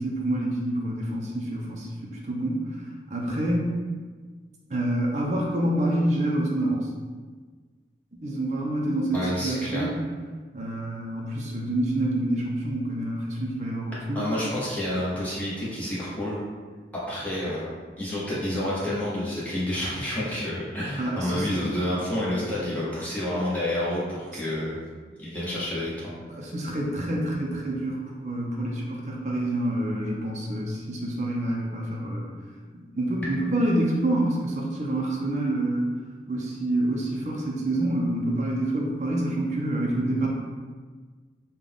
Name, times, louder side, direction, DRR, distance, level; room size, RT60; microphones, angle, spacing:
voice 1, 0.0-2.7 3.1-3.8 4.7-6.9 8.1-10.0 10.5-14.3 21.0-21.5 24.3-24.4 26.3-32.3 32.7-35.9 36.3-40.3, right 1 dB, 40° right, -3 dB, 0.5 m, -27 dB
voice 2, 9.1-9.9 14.1-16.4 16.9-17.7 18.0-24.8 25.2-25.9, left 1 dB, 10° left, -8 dB, 0.9 m, -29 dB
3.7 x 2.2 x 3.5 m, 1.4 s
head